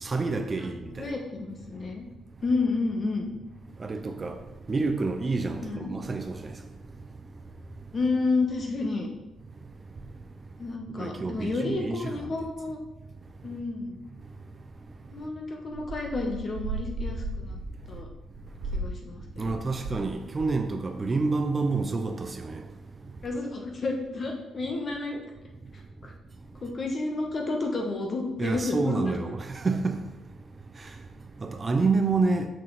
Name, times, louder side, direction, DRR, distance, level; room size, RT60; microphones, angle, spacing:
voice 1, 0.0-1.1 3.8-4.3 4.7-6.5 11.0-12.1 19.4-22.6 28.4-30.0 31.4-32.5, right 3 dB, 30° right, 0.6 m, -28 dB
voice 2, 1.0-2.0 2.4-3.3 5.6-5.9 7.9-9.1 10.6-12.8 13.4-14.0 15.1-17.6 17.9-18.1 18.7-19.5 23.2-25.2 26.0-26.1 26.6-29.1, left 3 dB, 40° left, 1.5 m, -30 dB
sound 1, 15.7-20.1 20.3-20.7, right 2 dB, 80° right, 1.8 m, -36 dB
6.5 x 6.2 x 4.1 m
cardioid pair, 90°, 0 cm